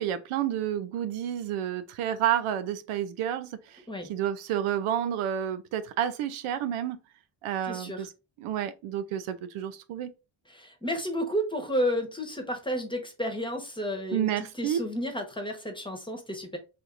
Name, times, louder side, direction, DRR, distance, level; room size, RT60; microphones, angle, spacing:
voice 1, 0.0-7.0 7.4-8.1 8.4-10.1 14.1-14.8, right 10 dB, 85° right, 0.6 m, -30 dB
voice 2, 7.6-8.1 10.5-16.6, equal, 10° left, 1.0 m, -32 dB
4.4 x 2.8 x 2.5 m
cardioid pair, 70°, 49 cm